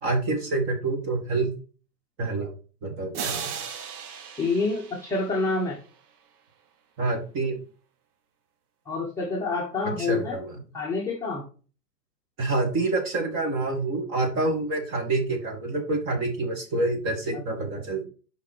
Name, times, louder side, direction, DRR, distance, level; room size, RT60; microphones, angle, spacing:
voice 1, 0.0-1.5 2.2-2.5 2.8-3.5 7.0-7.6 10.0-10.6 12.4-18.0, right 2 dB, 25° right, 3 dB, 2.1 m, -27 dB
sound 1, 3.1-6.0, right 7 dB, 65° right, 1.3 m, -36 dB
voice 2, 4.4-5.8 8.9-10.4 10.7-11.4, left 3 dB, 5° left, -5 dB, 1.1 m, -27 dB
6.0 x 5.4 x 6.1 m, 0.39 s
hypercardioid pair, 135°, 49 cm